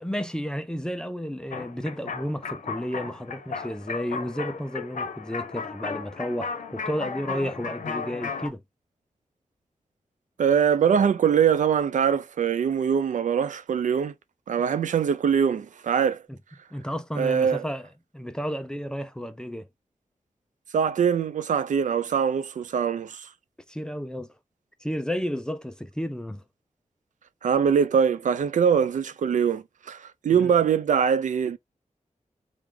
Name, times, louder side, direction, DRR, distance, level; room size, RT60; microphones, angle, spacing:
voice 1, 0.0-8.6 16.7-17.9 18.1-19.7 23.7-24.3 24.8-26.4 30.3-30.5, equal, 5° left, 0.4 m, -32 dB
sound 1, 1.5-8.5, left 5 dB, 85° left, 0.7 m, -35 dB
voice 2, 10.4-14.1 14.5-16.2 17.2-17.6 20.7-23.2 27.4-31.6, right 7 dB, 80° right, 0.4 m, -23 dB
3.4 x 2.4 x 3.2 m
wide cardioid pair, 140°, 13 cm